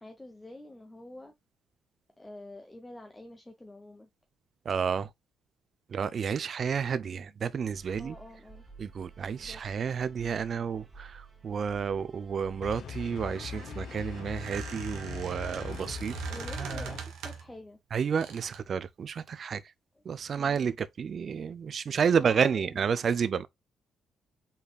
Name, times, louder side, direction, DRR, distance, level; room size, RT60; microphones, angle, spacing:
voice 1, 0.0-1.3 2.2-4.1 7.9-8.6 9.4-9.6 16.2-17.8 19.9-20.0 20.3-20.7 22.0-22.9, left 1 dB, 15° left, 0.8 m, -47 dB
voice 2, 4.7-5.1 5.9-8.2 8.8-16.1 16.6-16.9 17.9-19.6 20.1-23.5, right 6 dB, 50° right, 0.4 m, -30 dB
sound 1, 7.6-13.0, right 5 dB, 25° right, 2.8 m, -52 dB
sound 2, 12.6-17.0, left 6 dB, 70° left, 0.6 m, -41 dB
Squeak, 13.2-17.6 18.2-18.7, right 7 dB, 85° right, 1.4 m, -42 dB
5.4 x 4.1 x 2.2 m
cardioid pair, 90°, 0 cm